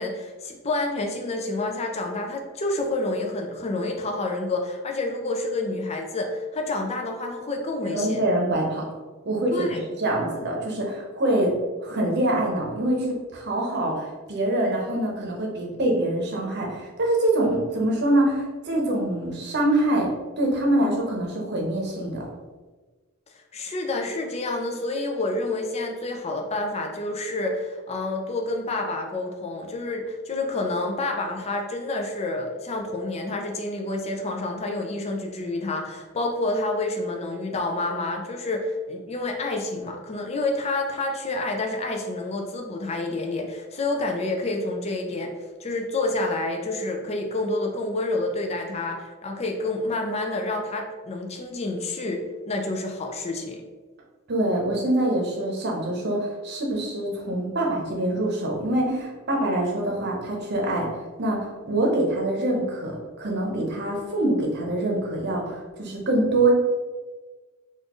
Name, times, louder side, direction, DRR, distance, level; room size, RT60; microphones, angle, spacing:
voice 1, 0.0-8.2 9.5-9.8 23.5-45.3 45.6-53.6, left 2 dB, 30° left, 2 dB, 0.4 m, -28 dB
voice 2, 7.8-8.8 9.2-11.5 11.8-20.1 20.4-22.2 54.3-60.9 61.2-66.5, right 1 dB, 50° right, -1 dB, 0.8 m, -25 dB
4.2 x 2.5 x 3.0 m, 1.3 s
head